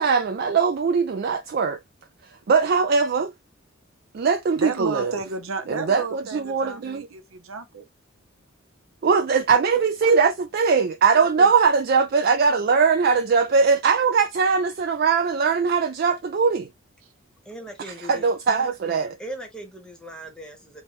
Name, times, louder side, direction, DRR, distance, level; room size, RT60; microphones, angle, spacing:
voice 1, 0.0-1.8 2.5-3.3 4.1-5.1 5.7-7.1 9.0-16.7 18.1-19.2, right 5 dB, 50° right, 0.3 m, -21 dB
voice 2, 4.5-7.9, right 4 dB, 80° right, 0.8 m, -32 dB
voice 3, 11.2-11.5 17.4-18.2 19.2-20.8, right 1 dB, 5° left, 1.0 m, -38 dB
3.2 x 3.2 x 3.0 m
head